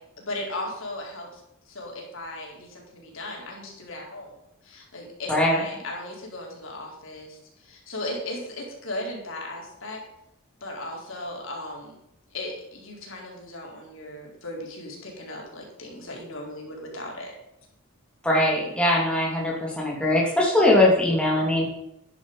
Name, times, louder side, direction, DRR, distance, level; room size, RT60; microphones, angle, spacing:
voice 1, 0.2-1.4 1.7-4.3 4.6-10.0 10.6-12.0 12.3-17.4, left 1 dB, 60° left, -1 dB, 4.4 m, -36 dB
voice 2, 5.3-5.6 18.2-21.6, left 1 dB, 5° left, -4 dB, 2.8 m, -21 dB
12.5 x 10.5 x 5.5 m, 0.81 s
head